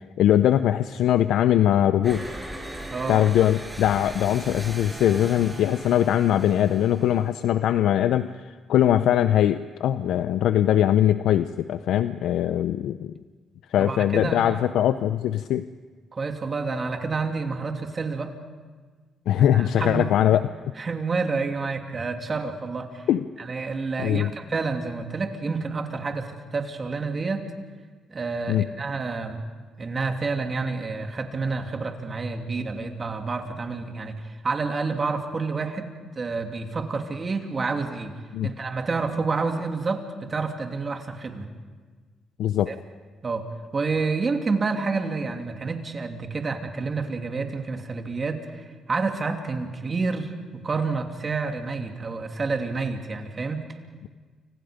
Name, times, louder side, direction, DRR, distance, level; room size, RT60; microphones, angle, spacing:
voice 1, 0.2-2.2 3.1-13.1 13.7-15.6 19.3-20.4 23.1-23.2 24.0-24.3 28.5-28.6 38.3-38.5 42.4-42.7, left 11 dB, 80° left, 11 dB, 0.6 m, -21 dB
sound 1, 2.0-7.6, right 1 dB, 10° right, 5.7 m, -39 dB
voice 2, 2.9-3.2 13.8-14.6 16.1-18.3 19.4-20.1 20.8-23.0 23.4-27.5 28.1-29.4 29.8-38.1 38.4-41.5 42.7-42.8 43.2-43.4 43.7-53.6, right 4 dB, 35° right, 4 dB, 2.8 m, -29 dB
29.5 x 26.0 x 5.2 m, 1.4 s
cardioid pair, 90°, 0 cm